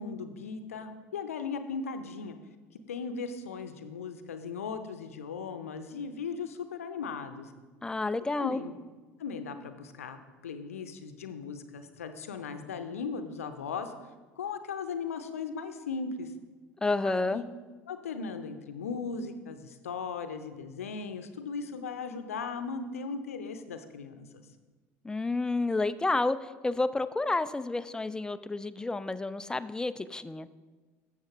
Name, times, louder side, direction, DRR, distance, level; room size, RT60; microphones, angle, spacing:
voice 1, 0.0-2.4 2.9-7.5 8.4-8.7 9.2-13.9 14.4-16.3 17.0-17.4 17.9-24.5, left 5 dB, 75° left, 9 dB, 0.6 m, -37 dB
voice 2, 7.8-8.6 16.8-17.4 25.0-30.5, left 3 dB, 10° left, 14 dB, 0.3 m, -30 dB
12.5 x 7.2 x 3.0 m, 1.3 s
figure-of-eight pair, 65°, 8 cm